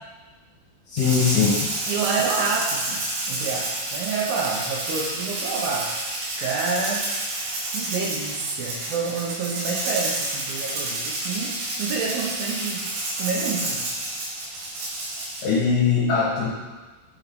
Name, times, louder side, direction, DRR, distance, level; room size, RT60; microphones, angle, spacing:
voice 1, 0.9-1.6 15.4-16.5, left 6 dB, 60° left, -8 dB, 2.8 m, -21 dB
Rattle (instrument), 1.0-15.5, right 2 dB, 90° right, 4.2 m, -29 dB
voice 2, 1.9-3.0 3.3-5.9 6.4-7.1 7.7-12.8 13.2-13.9, right 5 dB, 75° right, -1 dB, 2.4 m, -28 dB
9.9 x 4.8 x 4.0 m, 1.3 s
omnidirectional pair, 5.0 m